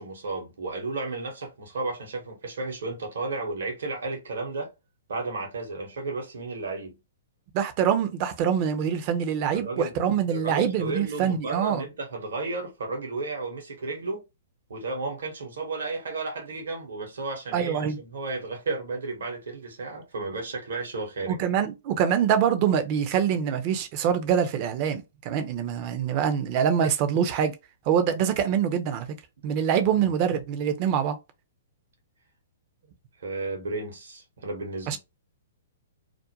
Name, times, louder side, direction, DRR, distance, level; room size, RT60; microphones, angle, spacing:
voice 1, 0.0-4.7 5.1-7.0 9.5-10.0 10.3-14.2 14.7-21.4 30.0-30.1 33.2-35.0, right 3 dB, 70° right, 1.0 m, -33 dB
voice 2, 7.5-11.8 17.5-18.0 21.3-27.6 27.9-29.1 29.4-31.2 34.9-35.0, right 8 dB, 40° right, 0.6 m, -25 dB
2.5 x 2.1 x 2.8 m
hypercardioid pair, 125°, 0 cm